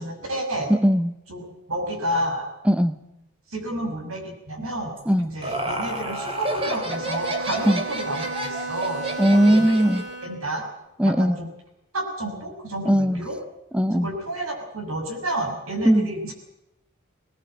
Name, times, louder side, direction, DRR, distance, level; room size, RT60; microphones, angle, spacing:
voice 1, 0.0-0.7 1.3-2.5 3.5-9.7 10.2-10.6 11.0-11.5 11.9-13.4 13.9-16.3, right 1 dB, 85° right, 4 dB, 6.3 m, -30 dB
voice 2, 0.7-1.1 2.7-2.9 5.1-5.3 7.7-7.8 9.2-10.0 11.0-11.4 12.9-13.2 13.7-14.1 15.8-16.1, equal, 5° right, 12 dB, 0.7 m, -19 dB
Laughter, 5.0-10.1, right 1 dB, 25° right, 3.3 m, -31 dB
Bowed string instrument, 6.9-10.5, right 3 dB, 55° right, 3.1 m, -34 dB
21.0 x 18.5 x 7.7 m, 0.89 s
head